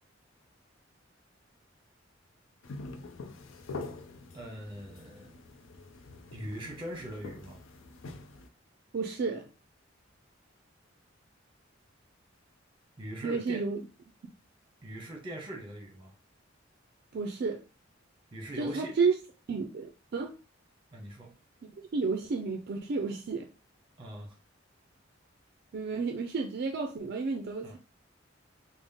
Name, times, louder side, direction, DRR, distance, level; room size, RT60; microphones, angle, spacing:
sound 1, 2.6-8.5, left 3 dB, 80° left, 0.5 m, -45 dB
voice 1, 4.3-5.4 6.3-7.6 13.0-13.7 14.8-16.1 18.3-19.0 20.9-21.3 24.0-24.4 27.6-27.8, right 1 dB, 25° right, 1.0 m, -41 dB
voice 2, 8.9-9.5 13.2-13.8 17.1-17.6 18.6-19.1 19.5-20.3 21.9-23.5 25.7-27.8, right 4 dB, 55° right, 0.4 m, -31 dB
3.7 x 2.0 x 3.5 m
head